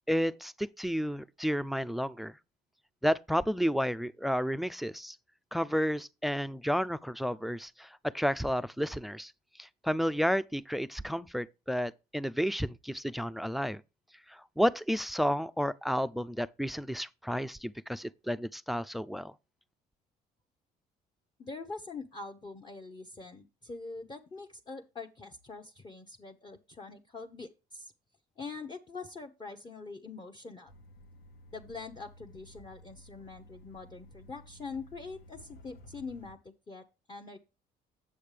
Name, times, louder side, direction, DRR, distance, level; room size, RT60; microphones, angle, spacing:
voice 1, 0.1-2.4 3.0-5.2 5.5-9.3 9.6-13.8 14.3-19.3, equal, ahead, 0.3 m, -31 dB
voice 2, 21.4-27.9 28.4-30.7 31.5-37.4, left 4 dB, 25° left, 0.8 m, -44 dB
sound 1, 30.7-36.3, left 1 dB, 75° left, 1.3 m, -54 dB
8.5 x 7.4 x 3.3 m
cardioid pair, 110°, 17 cm